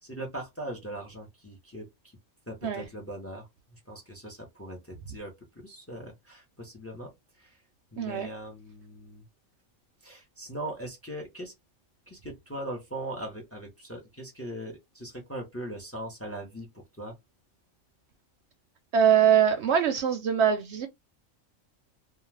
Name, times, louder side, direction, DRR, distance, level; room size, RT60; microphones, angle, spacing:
voice 1, 0.0-2.1 2.5-7.6 7.9-9.2 10.0-11.5 12.1-17.1, right 1 dB, 15° left, 0.7 m, -40 dB
voice 2, 8.0-8.3 18.9-20.9, right 8 dB, 65° right, 0.8 m, -23 dB
2.4 x 2.3 x 3.2 m
omnidirectional pair, 1.3 m